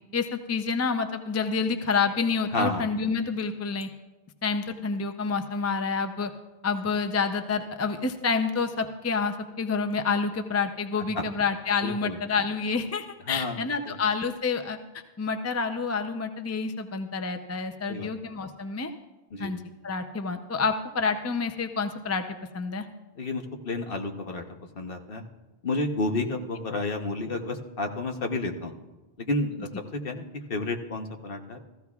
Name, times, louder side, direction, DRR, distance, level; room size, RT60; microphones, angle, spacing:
voice 1, 0.1-3.9 4.4-6.3 6.6-14.8 15.2-18.9 19.4-22.2 22.5-22.9, left 5 dB, 25° left, 6 dB, 0.4 m, -28 dB
voice 2, 2.5-2.9 11.1-11.2 11.8-12.2 13.3-13.6 13.9-14.0 17.9-18.1 19.3-19.5 23.2-24.4 24.7-25.2 25.6-28.8 29.2-30.2 30.5-31.6, left 2 dB, 60° left, 4 dB, 1.2 m, -30 dB
15.0 x 14.5 x 2.4 m, 1.1 s
omnidirectional pair, 1.1 m